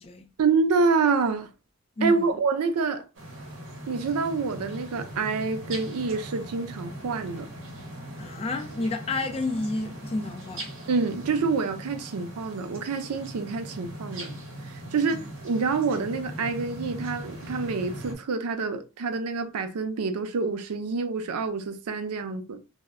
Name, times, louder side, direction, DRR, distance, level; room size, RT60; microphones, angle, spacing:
voice 1, 0.4-1.5 2.0-3.0 3.9-7.5 10.9-14.3 14.9-22.6, right 4 dB, 90° right, 0.4 m, -27 dB
voice 2, 2.0-2.4 8.2-10.7 15.2-15.3, left 2 dB, 25° left, 0.3 m, -30 dB
sound 1, 3.1-18.1, right 1 dB, 60° right, 0.8 m, -40 dB
2.1 x 2.1 x 3.5 m
head